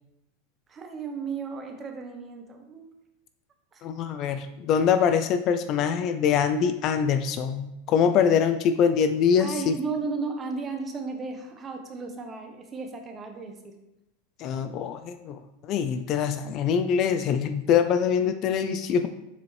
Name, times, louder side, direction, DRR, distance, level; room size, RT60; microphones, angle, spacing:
voice 1, 0.7-2.9 3.7-3.9 9.4-13.8, right 4 dB, 25° right, 4 dB, 0.9 m, -34 dB
voice 2, 3.8-9.8 14.4-19.1, left 7 dB, 40° left, 9 dB, 0.4 m, -24 dB
6.9 x 4.2 x 3.2 m, 0.91 s
supercardioid pair, 135°, 0 cm